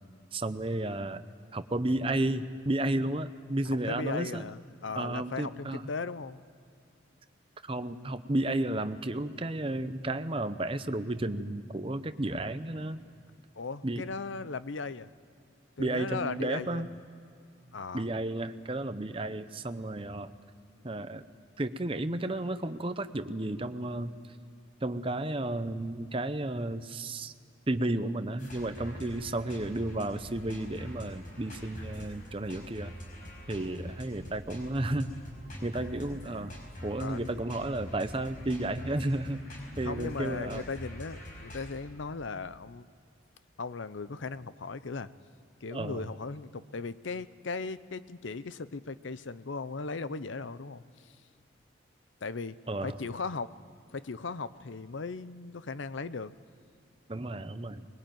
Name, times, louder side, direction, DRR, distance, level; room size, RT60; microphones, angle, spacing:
voice 1, 0.3-1.2 1.5-4.4 5.0-5.9 7.7-13.0 13.8-14.0 15.8-16.9 17.9-20.3 20.8-21.2 21.6-24.1 24.8-27.3 27.7-32.9 33.5-35.1 35.6-36.5 36.8-39.4 39.8-40.6 45.7-46.0 52.7-53.0 57.1-57.9, right 1 dB, 25° right, 10 dB, 0.7 m, -32 dB
voice 2, 3.9-6.4 13.6-15.1 15.8-16.8 17.7-18.1 37.0-37.3 39.8-42.9 43.6-45.1 45.6-51.1 52.2-52.6 52.8-53.5 53.9-56.3, left 4 dB, 70° left, 15 dB, 0.7 m, -37 dB
sound 1, 28.4-41.7, equal, 40° left, 5.1 m, -44 dB
21.0 x 21.0 x 9.1 m, 2.5 s
head